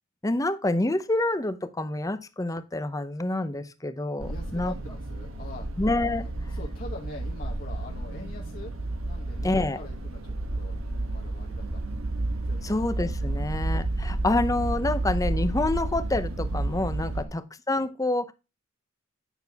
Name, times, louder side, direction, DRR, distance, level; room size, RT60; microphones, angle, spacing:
voice 1, 0.2-4.7 5.8-6.2 9.4-9.8 12.6-18.3, left 2 dB, 15° left, 0.6 m, -27 dB
sound 1, 4.2-17.3, right 2 dB, 80° right, 1.2 m, -31 dB
voice 2, 4.3-5.7 6.1-8.7 9.0-11.8 12.4-12.8 13.3-13.5 17.1-17.4, left 2 dB, 45° left, 1.1 m, -44 dB
9.0 x 6.3 x 3.5 m
head